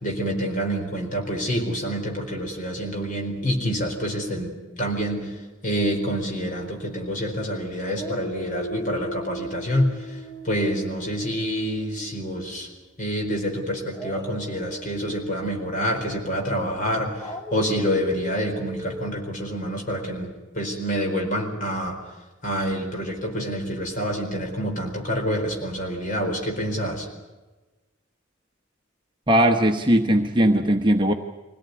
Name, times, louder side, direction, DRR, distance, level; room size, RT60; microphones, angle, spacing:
voice 1, 0.0-5.3 5.6-9.9 10.4-12.7 13.0-22.0 22.4-27.1, equal, 40° left, 1 dB, 4.4 m, -27 dB
Dog, 5.9-7.4 7.8-12.9 13.9-19.1, left 1 dB, 15° left, 2.6 m, -39 dB
voice 2, 29.3-31.1, equal, 25° right, 3 dB, 1.1 m, -19 dB
24.5 x 17.5 x 9.7 m, 1.2 s
head